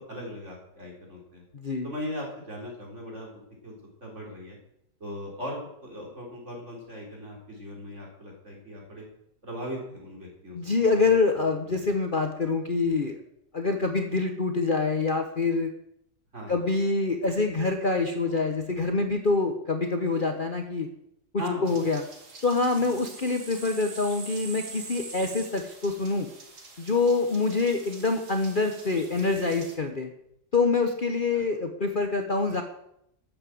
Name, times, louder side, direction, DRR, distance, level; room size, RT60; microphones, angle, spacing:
voice 1, 0.0-1.4 1.8-3.7 4.0-4.6 5.0-9.1 9.4-11.1 11.6-11.8 16.3-16.6 21.4-21.7 22.7-23.0 31.3-31.5, left 1 dB, 45° right, -1 dB, 4.4 m, -38 dB
voice 2, 1.5-1.9 10.5-13.2 13.5-15.7 16.5-20.9 21.6-22.0 22.4-26.3 26.8-30.1 30.5-32.6, left 3 dB, 35° left, 5 dB, 1.1 m, -26 dB
sound 1, 21.7-29.8, right 4 dB, 80° right, 2.7 m, -44 dB
13.0 x 7.9 x 7.7 m, 0.76 s
omnidirectional pair, 1.7 m